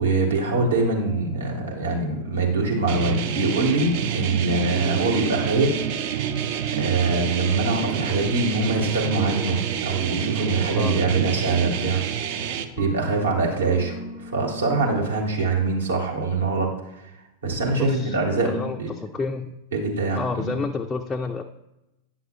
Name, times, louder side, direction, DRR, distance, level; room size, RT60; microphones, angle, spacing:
voice 1, 0.0-5.7 6.7-12.0 12.8-17.0 17.4-18.9 19.7-20.6, right 3 dB, 70° right, -1 dB, 1.4 m, -23 dB
sound 1, 0.6-15.0, right 4 dB, 20° right, 0.7 m, -39 dB
sound 2, 2.9-12.7, right 9 dB, 50° right, 0.4 m, -28 dB
voice 2, 10.7-11.6 17.8-18.2 18.4-19.5 20.1-21.4, left 4 dB, 15° left, 4 dB, 0.3 m, -30 dB
9.1 x 5.9 x 2.3 m, 0.92 s
figure-of-eight pair, 90°, 0 cm